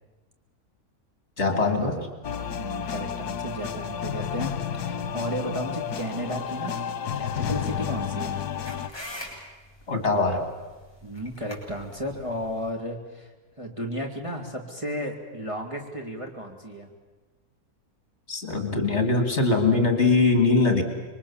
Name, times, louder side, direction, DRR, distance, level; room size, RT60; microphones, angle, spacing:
voice 1, 1.4-2.1 9.9-10.5 18.3-20.8, left 3 dB, 45° left, 6 dB, 2.9 m, -22 dB
sound 1, 2.2-8.9, left 8 dB, 75° left, 1.5 m, -31 dB
voice 2, 2.6-6.9 7.1-8.4 11.0-13.3 13.6-16.9, equal, 20° right, 0 dB, 2.6 m, -34 dB
sound 2, 7.6-12.7, left 1 dB, 15° left, 6.2 m, -44 dB
27.0 x 23.0 x 7.2 m, 1.2 s
omnidirectional pair, 1.7 m